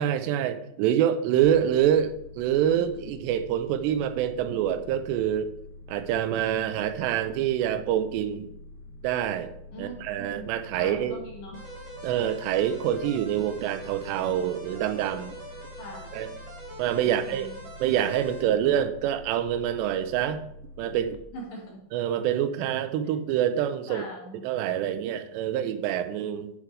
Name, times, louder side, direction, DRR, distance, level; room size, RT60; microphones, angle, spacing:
voice 1, 0.0-5.5 5.9-8.5 9.0-9.5 9.8-11.2 12.0-15.4 16.1-16.3 16.8-17.5 17.8-20.4 20.8-21.2 21.9-24.0 24.4-26.5, right 10 dB, 80° right, 10 dB, 2.7 m, -26 dB
sound 1, 1.4-21.2, left 2 dB, 80° left, 2.6 m, -46 dB
voice 2, 9.7-11.6 15.8-16.1 17.0-17.6 21.3-21.8 23.9-24.4, equal, 55° left, -3 dB, 3.1 m, -42 dB
sound 2, 11.5-18.4, right 1 dB, 35° right, 4.2 m, -44 dB
10.5 x 7.5 x 3.4 m, 0.79 s
omnidirectional pair, 5.2 m